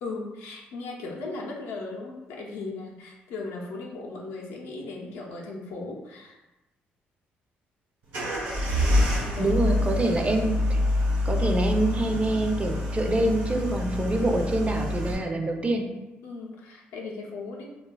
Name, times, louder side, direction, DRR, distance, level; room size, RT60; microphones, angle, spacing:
voice 1, 0.0-6.4 9.3-9.8 16.2-17.6, left 3 dB, 85° left, -1 dB, 0.5 m, -37 dB
sound 1, 8.1-15.1, left 1 dB, 85° right, 0.9 m, -26 dB
voice 2, 9.4-10.8 11.2-15.9, right 2 dB, 30° right, 3 dB, 0.5 m, -25 dB
3.2 x 2.2 x 2.2 m, 1.0 s
supercardioid pair, 60°, 5 cm